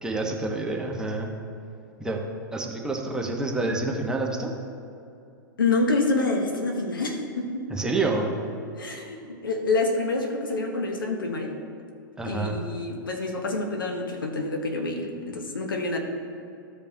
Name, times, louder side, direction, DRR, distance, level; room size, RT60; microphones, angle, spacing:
voice 1, 0.0-1.3 2.0-2.2 2.5-4.5 7.7-8.3 12.2-12.6, right 2 dB, 5° right, 0 dB, 1.1 m, -28 dB
voice 2, 5.6-7.7 8.8-11.5 12.2-16.0, left 3 dB, 85° left, 3 dB, 1.2 m, -27 dB
14.5 x 5.2 x 2.9 m, 2.6 s
hypercardioid pair, 110°, 11 cm